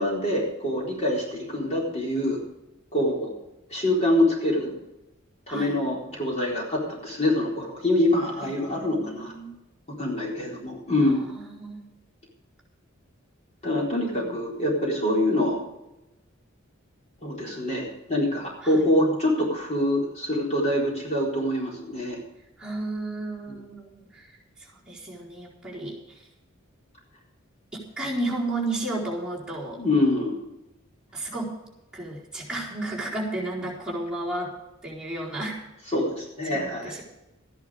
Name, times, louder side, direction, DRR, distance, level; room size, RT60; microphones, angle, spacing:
voice 1, 0.0-2.4 2.9-3.3 3.7-4.7 5.5-9.3 10.0-11.2 13.6-15.6 17.2-22.2 23.5-23.6 29.8-30.3 35.9-37.0, left 1 dB, 35° left, -3 dB, 4.1 m, -25 dB
voice 2, 5.5-5.8 8.4-9.5 11.0-11.8 14.2-14.4 18.6-18.8 22.6-24.3 24.6-26.2 27.7-29.8 31.1-31.6 31.9-34.5 34.8-35.6 36.5-37.0, right 2 dB, 5° right, -7 dB, 4.3 m, -33 dB
14.0 x 11.0 x 5.1 m, 0.93 s
head